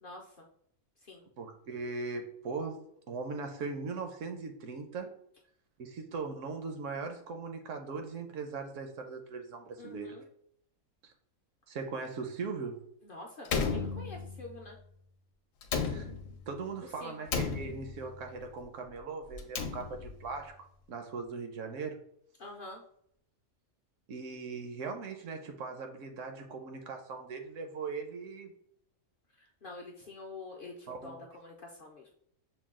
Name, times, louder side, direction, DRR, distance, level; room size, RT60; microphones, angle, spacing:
voice 1, 0.0-0.5 1.0-1.2 9.8-10.3 13.0-14.8 16.8-17.3 22.4-22.8 29.4-32.1, left 2 dB, 55° left, 0 dB, 0.7 m, -47 dB
voice 2, 1.4-2.8 3.1-5.1 5.8-10.2 11.0-11.1 11.7-12.8 15.9-16.1 16.5-20.5 20.9-22.0 24.1-28.5 30.9-31.2, right 4 dB, 70° right, 5 dB, 1.0 m, -39 dB
Slam, 13.4-14.6 15.6-16.5 17.3-18.2 19.3-20.3, left 5 dB, 75° left, 1.0 m, -34 dB
5.9 x 2.2 x 3.6 m, 0.68 s
omnidirectional pair, 1.4 m